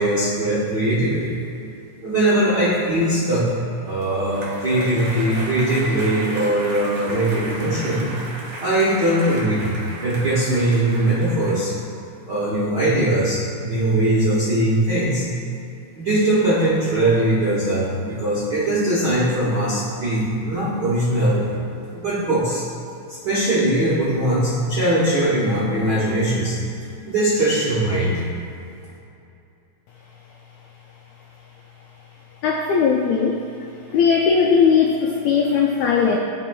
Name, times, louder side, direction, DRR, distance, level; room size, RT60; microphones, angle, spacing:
voice 1, 0.0-1.3 2.0-3.5 3.8-8.1 8.6-9.8 10.0-11.7 12.3-15.2 15.9-21.6 21.9-22.6 23.1-26.6 27.0-28.2, right 1 dB, 75° right, -9 dB, 1.0 m, -20 dB
sound 1, 3.7-11.6, right 2 dB, 55° right, 1.6 m, -35 dB
voice 2, 32.4-33.4 33.9-36.2, left 6 dB, 90° left, 0 dB, 1.5 m, -18 dB
12.0 x 4.8 x 2.3 m, 2.6 s
omnidirectional pair, 3.7 m